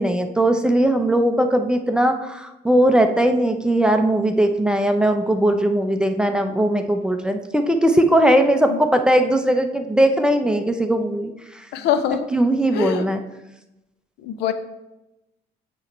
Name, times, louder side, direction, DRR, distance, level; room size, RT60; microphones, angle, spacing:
voice 1, 0.0-11.6 12.3-13.2, right 1 dB, 5° right, 6 dB, 0.5 m, -19 dB
voice 2, 11.7-12.3 12.7-13.1 14.2-14.5, left 9 dB, 85° left, 10 dB, 0.6 m, -23 dB
8.3 x 3.1 x 4.4 m, 0.94 s
cardioid pair, 110°, 17 cm